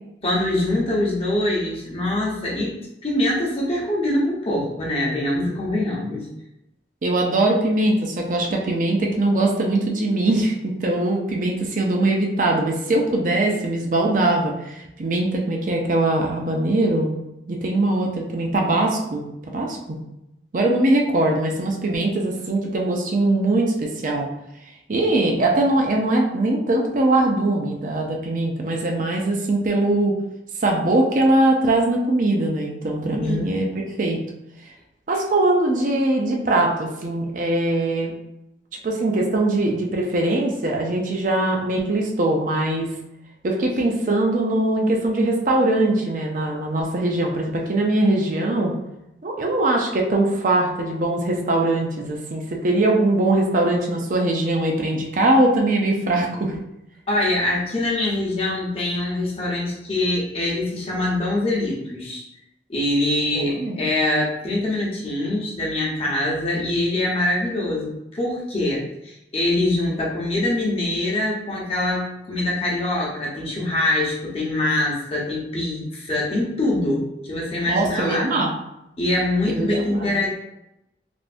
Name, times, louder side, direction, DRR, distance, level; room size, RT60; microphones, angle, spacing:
voice 1, 0.2-2.7 3.0-6.3 33.2-33.5 57.1-62.2 62.7-78.3 79.0-80.3, left 1 dB, 35° left, -4 dB, 0.8 m, -24 dB
voice 2, 7.0-17.1 17.5-20.0 20.5-24.3 24.9-30.1 30.6-34.2 35.1-38.1 38.8-42.9 43.4-48.7 49.2-56.5 63.3-63.8 77.7-78.5 79.6-80.1, right 2 dB, 45° right, 0 dB, 0.5 m, -21 dB
3.4 x 2.5 x 2.5 m, 0.87 s
head